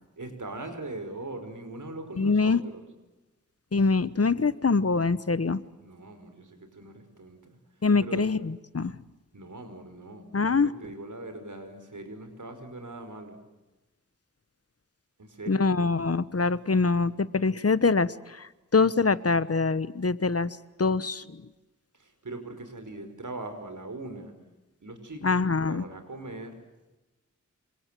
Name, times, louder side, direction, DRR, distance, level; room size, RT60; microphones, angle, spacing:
voice 1, 0.2-2.9 5.8-7.6 8.0-8.3 9.3-10.3 10.6-13.4 15.2-15.7 21.9-24.3 24.8-26.6, right 2 dB, 80° right, 7 dB, 5.4 m, -41 dB
voice 2, 2.2-2.6 3.7-5.6 7.8-8.9 10.3-10.7 15.5-21.4 25.2-25.8, left 4 dB, 50° left, 16 dB, 1.1 m, -24 dB
27.5 x 26.5 x 7.7 m, 1.1 s
wide cardioid pair, 65°, 30 cm